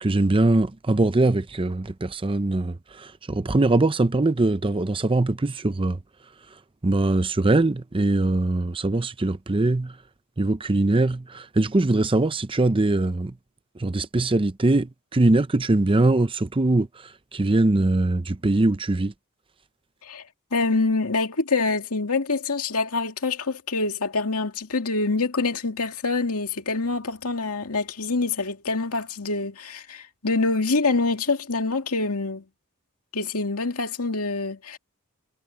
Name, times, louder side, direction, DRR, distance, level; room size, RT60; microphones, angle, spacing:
voice 1, 0.0-6.0 6.8-9.9 10.4-13.3 13.8-16.9 17.3-19.1, right 2 dB, 25° right, 0.6 m, -22 dB
voice 2, 20.5-32.4 33.1-34.8, left 3 dB, 75° left, 2.3 m, -25 dB
head